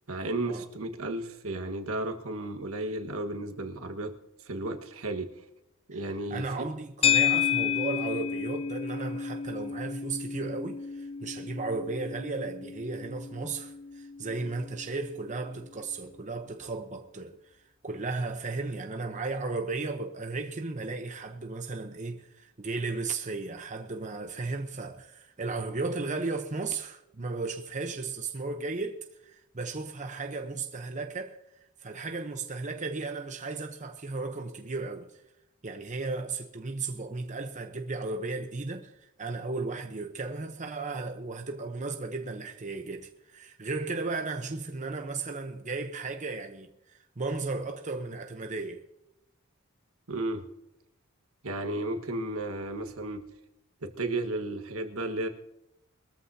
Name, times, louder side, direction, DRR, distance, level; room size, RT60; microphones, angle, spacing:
voice 1, 0.1-4.1 4.4-5.3 5.9-6.5 50.1-50.5 51.4-53.2 53.8-55.3, right 2 dB, 75° right, 1.5 m, -33 dB
voice 2, 6.3-17.4 17.8-31.4 31.8-35.1 35.6-48.9, right 3 dB, 35° right, 0.9 m, -35 dB
sound 1, 7.0-15.5, left 9 dB, 25° left, 0.7 m, -31 dB
22.0 x 14.0 x 2.8 m
head